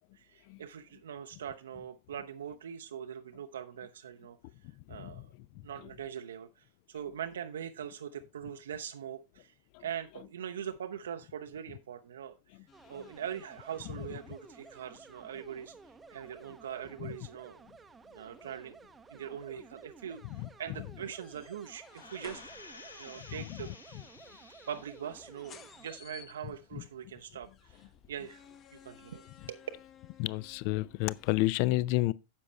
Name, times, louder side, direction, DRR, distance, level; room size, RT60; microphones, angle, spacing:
voice 1, 0.1-4.4 4.9-5.3 5.6-9.5 9.8-12.4 12.9-15.8 16.1-17.6 18.1-18.8 19.1-23.7 24.4-27.8 28.1-28.4 28.7-29.6, right 9 dB, 65° right, 0.6 m, -42 dB
voice 2, 4.9-5.2 5.6-5.7 9.7-9.8 17.0-17.1 20.4-20.5 23.1-23.6 26.7-26.8 30.2-32.1, left 18 dB, 45° left, 0.4 m, -31 dB
sound 1, 12.7-31.4, left 8 dB, 30° left, 0.9 m, -59 dB
sound 2, 12.7-26.0, right 5 dB, 15° right, 0.6 m, -55 dB
sound 3, 21.9-25.3 25.8-25.9, left 3 dB, 75° left, 1.2 m, -52 dB
9.9 x 7.2 x 3.2 m
figure-of-eight pair, 90°, 0 cm